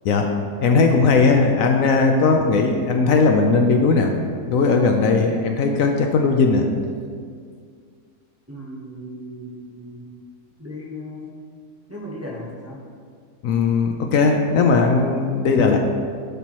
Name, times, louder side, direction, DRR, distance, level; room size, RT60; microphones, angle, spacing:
voice 1, 0.6-4.1 4.5-6.6 13.4-15.8, left 4 dB, 70° left, 4 dB, 0.9 m, -18 dB
voice 2, 8.5-10.2 10.6-11.4 11.9-12.8, left 1 dB, 10° right, -4 dB, 0.8 m, -36 dB
11.5 x 4.5 x 3.0 m, 2.1 s
omnidirectional pair, 1.6 m